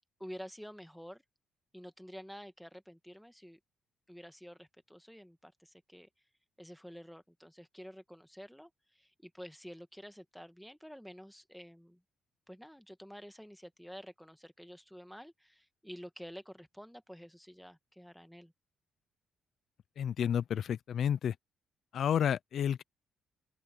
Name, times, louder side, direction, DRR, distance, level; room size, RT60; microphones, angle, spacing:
voice 1, 0.2-1.2 1.7-3.6 4.1-6.1 6.6-12.0 12.5-18.5, equal, ahead, 1.5 m, -50 dB
voice 2, 20.0-21.4 21.9-22.8, left 9 dB, 65° left, 0.5 m, -30 dB
open air
cardioid pair, 90°, 0 cm